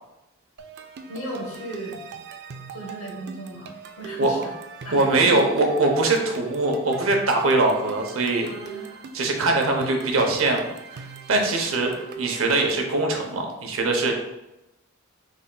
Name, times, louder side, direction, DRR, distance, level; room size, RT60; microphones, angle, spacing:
sound 1, 0.6-12.9, right 5 dB, 50° right, 0.3 m, -41 dB
voice 1, 1.1-2.0 2.7-4.5 4.8-5.4 8.5-8.9, right 1 dB, 65° left, -2 dB, 1.2 m, -36 dB
voice 2, 4.2-4.5 4.9-8.5 9.1-14.1, right 2 dB, 70° right, 2 dB, 0.7 m, -22 dB
3.7 x 3.5 x 2.2 m, 0.93 s
head